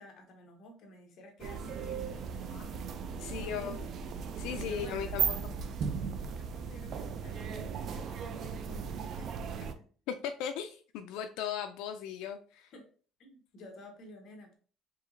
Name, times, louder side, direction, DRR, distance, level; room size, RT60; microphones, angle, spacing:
voice 1, 0.0-2.8 3.3-3.9 4.7-5.3 6.3-9.9 12.7-12.9 13.2-14.6, equal, 50° left, 2 dB, 1.1 m, -51 dB
sound 1, 1.4-9.7, right 6 dB, 45° right, 0.4 m, -37 dB
voice 2, 3.2-3.8 4.4-5.4 10.1-12.7, left 8 dB, 80° left, 6 dB, 0.3 m, -37 dB
4.6 x 2.8 x 2.5 m, 0.41 s
cardioid pair, 155°, 0 cm